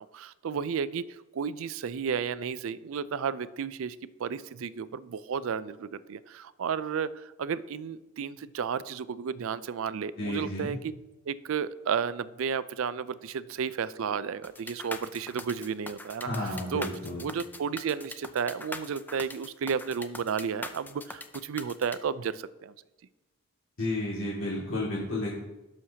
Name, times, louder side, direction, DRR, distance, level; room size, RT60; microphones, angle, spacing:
voice 1, 0.1-10.9 11.3-16.9 17.2-22.7, right 6 dB, 65° right, 16 dB, 0.4 m, -33 dB
voice 2, 10.2-10.7 16.2-17.3 23.8-25.3, left 1 dB, 65° left, -6 dB, 2.2 m, -32 dB
sound 1, 14.4-22.0, left 2 dB, 10° left, 0.3 m, -41 dB
16.5 x 6.4 x 2.8 m, 1.0 s
head